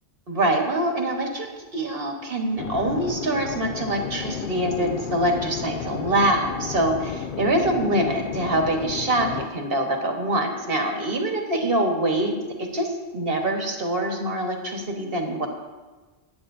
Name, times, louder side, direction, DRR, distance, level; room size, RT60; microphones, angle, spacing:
voice 1, 0.3-1.5 1.7-12.3 12.6-15.5, right 1 dB, 55° right, 2 dB, 1.7 m, -24 dB
sound 1, 2.6-9.5, left 7 dB, 60° left, 0.7 m, -33 dB
20.5 x 9.3 x 2.7 m, 1.3 s
omnidirectional pair, 1.1 m